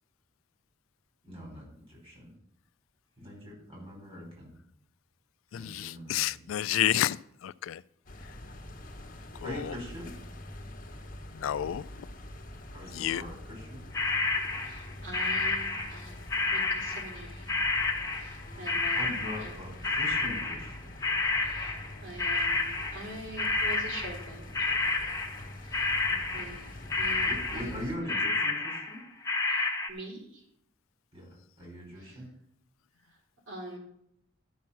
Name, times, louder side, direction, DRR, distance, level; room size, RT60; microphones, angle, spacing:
voice 1, 1.2-2.3 3.2-4.5 5.5-6.4 9.4-10.1 12.7-13.8 18.9-20.9 26.1-26.4 27.3-29.0 31.1-31.3 31.6-32.3, equal, 30° right, 4.7 m, -42 dB
voice 2, 5.5-7.8 9.4-9.7 11.3-12.1 12.9-13.2, left 12 dB, 90° left, 0.3 m, -30 dB
sound 1, 8.1-28.0, left 1 dB, 45° left, 1.3 m, -45 dB
sound 2, 13.9-16.1 16.3-23.1 23.4-26.7 26.9-27.8 28.1-29.9, left 3 dB, 15° left, 0.9 m, -30 dB
voice 3, 14.6-17.5 18.1-19.5 21.4-24.8 25.6-26.1 26.3-28.2 29.5-30.4 31.9-32.2 33.0-33.2 33.5-33.8, right 1 dB, 80° right, 2.9 m, -45 dB
12.0 x 6.2 x 5.8 m
head